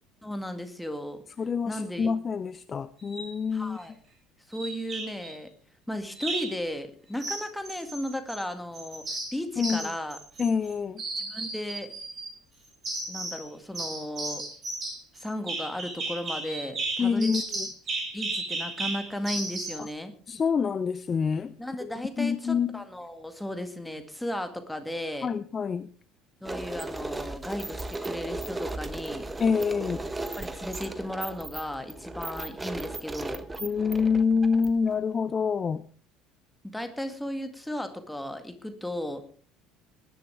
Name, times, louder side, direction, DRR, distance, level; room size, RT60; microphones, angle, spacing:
voice 1, 0.2-1.2 1.7-2.1 3.5-3.9 4.5-5.5 5.9-10.2 11.2-11.9 13.1-14.4 15.1-17.3 18.1-20.1 21.6-25.3 26.4-29.3 30.4-33.5 36.6-39.2, left 1 dB, 5° left, 7 dB, 2.0 m, -35 dB
voice 2, 1.4-3.8 9.6-9.9 10.4-11.0 17.0-17.7 19.8-19.9 20.3-21.5 21.8-22.8 25.2-25.9 29.4-30.0 33.6-35.8, left 5 dB, 30° left, 15 dB, 0.5 m, -27 dB
sound 1, 3.0-3.3 4.5-5.3 6.1-6.6 7.2-8.4 8.7-10.7 11.0-12.3 12.8-13.4 13.7-19.8, right 2 dB, 35° right, 6.8 m, -34 dB
sound 2, 26.4-35.0, right 2 dB, 15° right, 1.2 m, -36 dB
19.5 x 11.5 x 3.4 m, 0.42 s
figure-of-eight pair, 60°, 0 cm